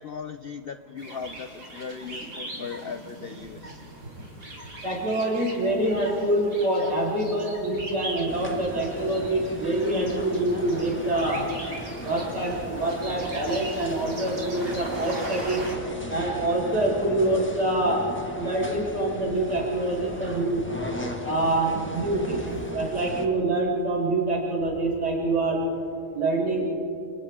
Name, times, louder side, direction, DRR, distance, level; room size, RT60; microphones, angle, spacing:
voice 1, 0.0-3.8, left 6 dB, 65° left, 9 dB, 0.6 m, -38 dB
sound 1, 1.0-15.8, right 1 dB, 55° right, 4.6 m, -40 dB
voice 2, 4.8-11.5 12.0-15.7 16.1-18.0 18.4-20.7 21.2-25.6 26.1-26.6, right 1 dB, 80° right, -4 dB, 6.5 m, -25 dB
sound 2, 8.3-23.3, equal, 5° left, 1.6 m, -37 dB
29.5 x 29.5 x 3.7 m, 2.8 s
omnidirectional pair, 1.8 m